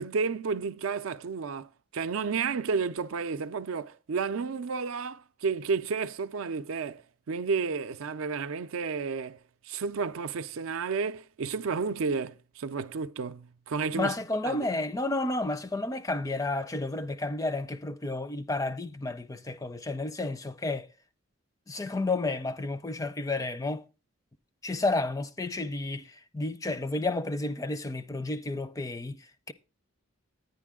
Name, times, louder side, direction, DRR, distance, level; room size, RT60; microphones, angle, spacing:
voice 1, 0.0-14.1 14.4-14.6, right 5 dB, 80° right, 0.5 m, -32 dB
voice 2, 13.9-20.9 21.7-23.8 24.6-29.5, left 2 dB, 15° left, 0.4 m, -31 dB
10.5 x 9.1 x 3.6 m
head